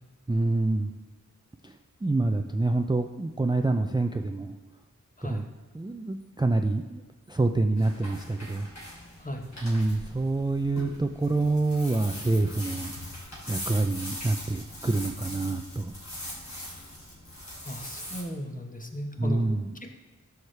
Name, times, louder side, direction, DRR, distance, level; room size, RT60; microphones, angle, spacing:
voice 1, 0.3-0.9 1.6-1.7 2.0-4.6 5.2-5.4 5.7-7.0 7.3-8.7 9.6-12.9 13.5-15.9 19.2-19.6, right 2 dB, 15° right, 5 dB, 0.4 m, -26 dB
sound 1, 7.8-18.2, equal, 55° left, 2.8 m, -41 dB
voice 2, 17.6-19.4 19.8-19.9, equal, 25° left, 3 dB, 1.1 m, -36 dB
11.5 x 6.4 x 3.3 m, 1.4 s
wide cardioid pair, 55°, 32 cm